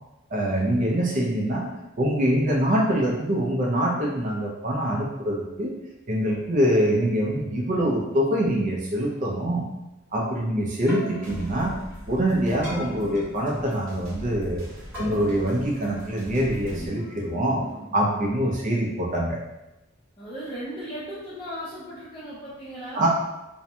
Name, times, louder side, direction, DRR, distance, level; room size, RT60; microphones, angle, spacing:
voice 1, 0.3-1.7 2.0-5.7 6.1-9.6 10.1-11.7 12.1-14.7 15.0-17.6 17.9-19.4 22.9-23.1, right 1 dB, 35° right, -3 dB, 0.4 m, -24 dB
Keyboard (musical), 10.7-18.9, equal, 10° right, 0.8 m, -40 dB
voice 2, 11.1-12.1 18.4-18.5 20.2-23.1, equal, 20° left, -12 dB, 0.5 m, -38 dB
sound 1, 11.2-16.9, equal, 70° right, 0.8 m, -41 dB
2.5 x 2.1 x 2.7 m, 0.98 s
head